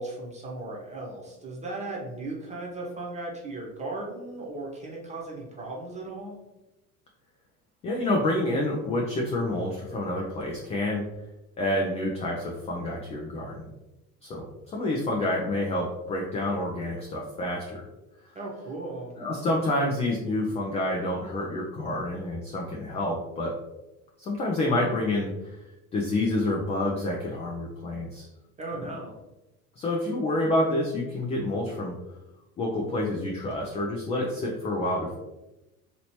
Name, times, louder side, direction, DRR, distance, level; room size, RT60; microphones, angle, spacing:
voice 1, 0.0-6.4 18.3-19.1 28.6-29.1, right 2 dB, 15° right, -2 dB, 0.9 m, -36 dB
voice 2, 7.8-11.1 11.6-13.7 14.2-17.8 19.2-23.6 24.2-25.6 25.9-28.2 29.8-31.9 32.6-35.1, left 1 dB, 15° left, -1 dB, 0.3 m, -28 dB
3.0 x 2.9 x 2.8 m, 1.0 s
hypercardioid pair, 75°, 43 cm